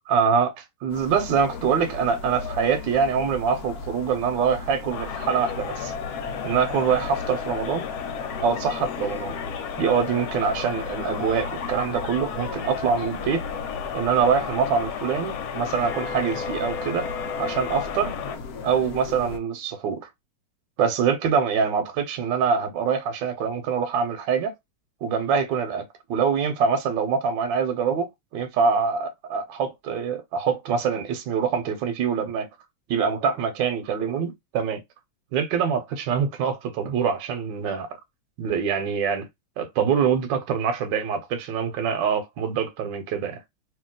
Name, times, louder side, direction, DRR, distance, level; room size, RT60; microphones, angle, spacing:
voice 1, 0.1-5.9 6.4-7.9 8.4-9.3 9.8-13.4 13.9-17.1 17.4-18.1 18.6-20.0 20.8-24.5 25.0-25.8 26.1-28.1 28.3-32.5 32.9-34.8 35.3-37.9 38.4-39.3 39.6-43.4, right 6 dB, 70° right, 1.4 m, -24 dB
sound 1, 0.9-19.4, left 4 dB, 65° left, 0.9 m, -36 dB
sound 2, 4.9-18.4, left 8 dB, 85° left, 1.6 m, -34 dB
3.1 x 2.8 x 3.7 m
omnidirectional pair, 2.2 m